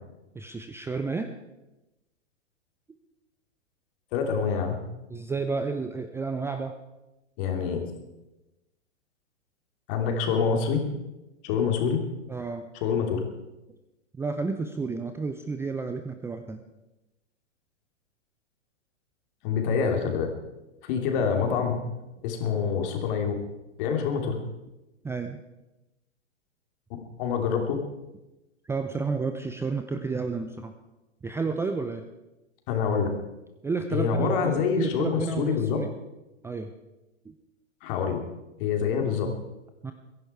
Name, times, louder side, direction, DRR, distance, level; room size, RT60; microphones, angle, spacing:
voice 1, 0.3-1.3 5.1-6.7 12.3-12.6 14.1-16.6 25.0-25.4 28.6-30.7 31.2-32.0 33.6-35.9 36.4-36.7 37.2-37.3 39.8-39.9, right 4 dB, 5° right, 7 dB, 0.6 m, -31 dB
voice 2, 4.1-4.8 7.4-7.8 9.9-10.8 11.4-12.0 12.8-13.2 19.4-20.3 20.8-21.8 22.2-23.3 23.8-24.4 27.2-27.8 32.7-33.1 33.9-35.8 37.8-38.2 38.6-39.3, left 6 dB, 45° left, 3 dB, 3.2 m, -26 dB
22.0 x 11.0 x 4.7 m, 1.0 s
hypercardioid pair, 115°, 36 cm